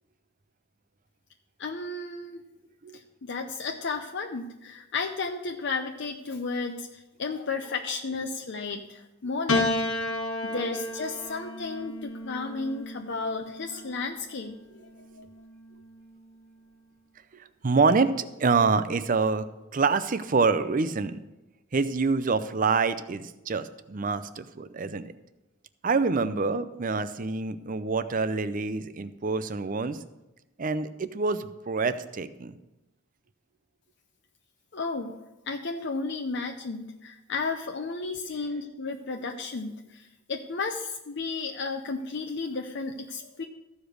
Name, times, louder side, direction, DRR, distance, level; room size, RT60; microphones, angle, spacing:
voice 1, 1.6-2.4 2.9-9.7 10.0-10.1 10.4-14.6 15.2-15.3 34.7-35.1 35.5-43.4, left 4 dB, 55° left, 4 dB, 0.7 m, -33 dB
Piano, 9.5-14.0 15.0-15.8, left 2 dB, 75° left, 1.1 m, -32 dB
voice 2, 17.3-19.5 19.7-21.2 21.7-25.1 25.8-30.0 30.6-32.6, right 4 dB, 40° right, 12 dB, 0.6 m, -26 dB
14.0 x 5.1 x 6.4 m, 1.0 s
head